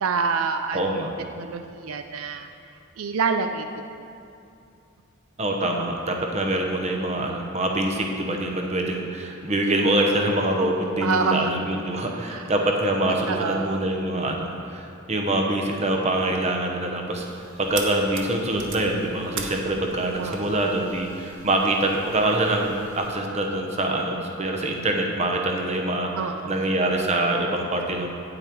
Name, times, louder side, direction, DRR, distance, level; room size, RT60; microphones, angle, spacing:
voice 1, 0.0-0.8 1.4-2.5 3.0-4.1 11.0-11.5 12.3-12.4 13.3-13.8 20.2-20.7 26.1-26.7, right 5 dB, 75° right, 7 dB, 0.4 m, -27 dB
voice 2, 0.7-1.1 5.4-17.2 17.6-26.1 26.5-28.1, right 1 dB, 30° right, 2 dB, 0.9 m, -25 dB
sound 1, 17.1-23.1, right 5 dB, 60° right, 0.9 m, -40 dB
9.1 x 8.8 x 4.6 m, 2.6 s
head